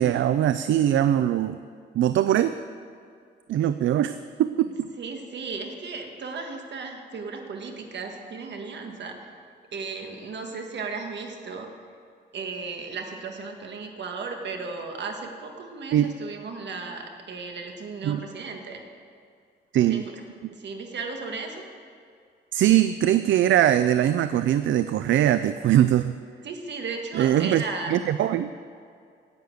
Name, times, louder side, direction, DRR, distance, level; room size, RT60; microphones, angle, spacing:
voice 1, 0.0-1.6 1.9-2.6 3.5-4.9 15.9-16.1 18.0-18.2 19.7-20.0 22.5-26.2 27.1-27.6 27.9-28.5, right 11 dB, 80° right, 12 dB, 0.4 m, -21 dB
voice 2, 5.0-9.3 9.7-11.7 12.3-18.8 19.9-20.2 20.5-21.6 26.4-27.9, right 4 dB, 65° right, 3 dB, 1.6 m, -35 dB
10.5 x 8.4 x 7.9 m, 2.2 s
cardioid pair, 120°, 20 cm